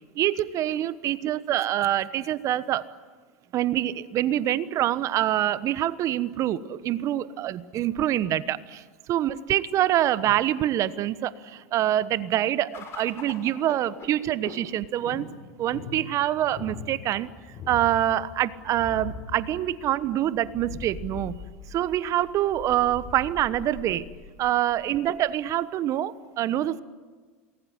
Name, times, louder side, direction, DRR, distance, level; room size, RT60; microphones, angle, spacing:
voice 1, 0.1-2.9 3.5-15.3 15.6-17.3 17.7-21.4 21.7-24.1 24.4-26.8, right 12 dB, 45° right, 16 dB, 1.1 m, -25 dB
sound 1, 12.7-25.3, left 5 dB, 35° left, 6.2 m, -42 dB
28.0 x 20.5 x 9.6 m, 1.4 s
hypercardioid pair, 90°, 8 cm